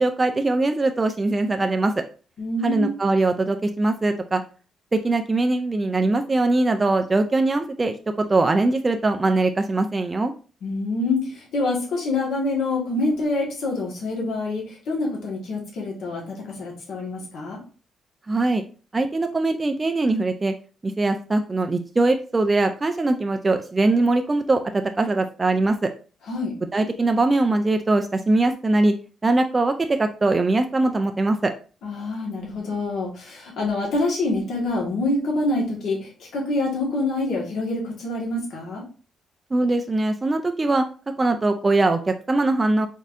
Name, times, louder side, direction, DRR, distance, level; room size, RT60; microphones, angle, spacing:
voice 1, 0.0-1.9 2.6-4.4 4.9-10.3 18.3-18.6 18.9-20.5 20.8-25.9 26.7-28.9 29.2-31.5 39.5-40.9 41.2-42.9, right 2 dB, 20° right, 6 dB, 0.3 m, -21 dB
voice 2, 2.4-2.9 10.6-17.6 26.3-26.6 31.8-38.8, left 2 dB, 70° left, -2 dB, 1.6 m, -26 dB
4.1 x 3.5 x 2.6 m, 0.36 s
cardioid pair, 155°, 0 cm